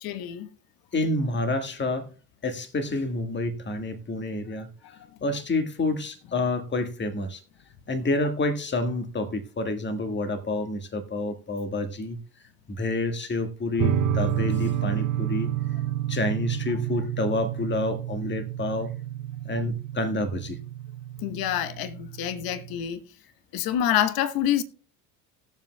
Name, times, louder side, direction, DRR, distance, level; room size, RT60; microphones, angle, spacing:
voice 1, 0.0-0.5 21.2-23.0 23.5-24.6, left 10 dB, 50° left, 1.2 m, -27 dB
voice 2, 0.9-2.1 2.4-4.7 5.2-7.4 7.9-12.2 12.7-15.5 16.1-18.9 19.4-20.6, left 2 dB, 25° left, 1.6 m, -28 dB
sound 1, 13.8-22.8, right 11 dB, 40° right, 0.7 m, -30 dB
19.5 x 7.3 x 2.2 m
hypercardioid pair, 70°, 46 cm